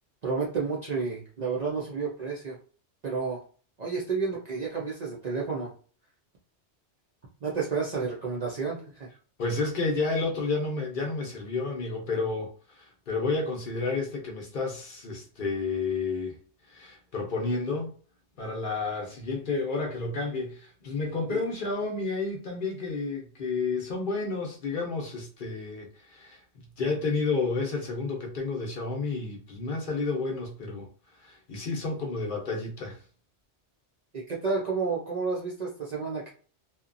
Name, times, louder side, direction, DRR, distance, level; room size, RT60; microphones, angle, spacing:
voice 1, 0.2-2.6 3.0-3.4 3.8-5.7 7.4-9.1 21.3-21.4 34.1-36.3, right 4 dB, 50° right, 0.5 m, -31 dB
voice 2, 9.4-16.4 16.6-17.9 18.4-26.4 26.8-30.9 31.2-33.0, left 3 dB, 55° left, 0.7 m, -31 dB
2.8 x 2.1 x 2.5 m
omnidirectional pair, 1.2 m